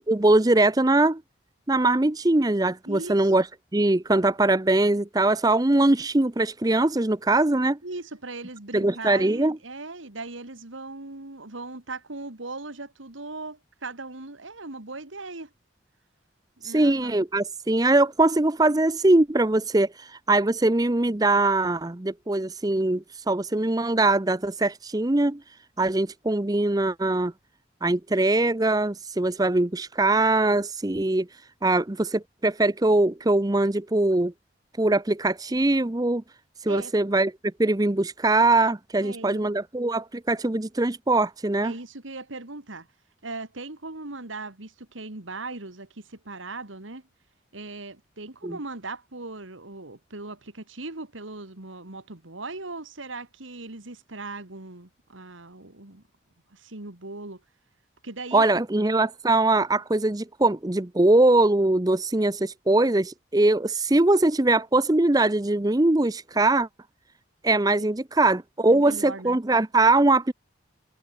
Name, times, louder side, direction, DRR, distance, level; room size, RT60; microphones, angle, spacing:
voice 1, 0.1-1.2 1.7-3.5 3.7-7.8 8.7-9.6 16.6-25.4 25.8-27.3 27.8-31.3 31.6-34.3 34.8-36.2 36.6-37.3 37.6-41.7 48.4-48.5 58.3-66.7 67.4-70.3, right 2 dB, 20° right, 0.6 m, -22 dB
voice 2, 2.9-3.3 7.8-15.5 16.6-17.1 36.6-36.9 39.0-39.5 41.6-42.9 43.2-47.0 47.5-56.0 56.5-57.4 58.0-58.6 68.7-69.4, right 3 dB, 85° right, 2.5 m, -38 dB
head